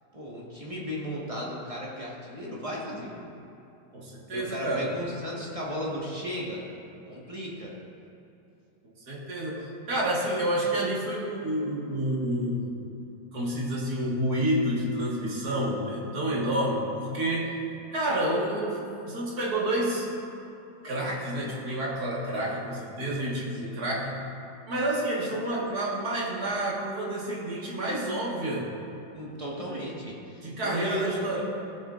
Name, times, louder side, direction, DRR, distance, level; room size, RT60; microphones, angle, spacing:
voice 1, 0.1-3.3 4.3-6.6 7.1-7.7 23.6-23.9 29.1-31.2, equal, 20° right, -5 dB, 1.4 m, -35 dB
voice 2, 3.9-4.9 9.1-12.7 13.3-17.6 17.9-20.1 20.8-24.2 24.7-28.7 30.4-31.4, right 1 dB, 55° right, -5 dB, 2.2 m, -29 dB
17.0 x 7.2 x 2.5 m, 2.8 s
omnidirectional pair, 2.0 m